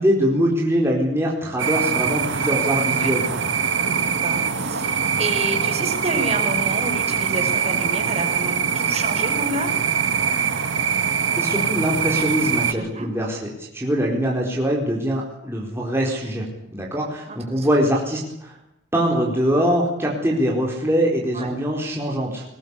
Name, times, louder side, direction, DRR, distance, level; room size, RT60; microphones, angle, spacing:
voice 1, 0.0-3.4 11.4-16.4 16.7-18.5 18.9-22.4, equal, 15° right, -2 dB, 4.4 m, -23 dB
sound 1, 1.6-12.7, right 7 dB, 75° right, 1.6 m, -23 dB
voice 2, 3.9-9.8 12.7-13.1 17.3-17.7 21.3-21.5, right 2 dB, 35° right, 3 dB, 5.3 m, -30 dB
20.5 x 19.5 x 8.3 m, 0.80 s
head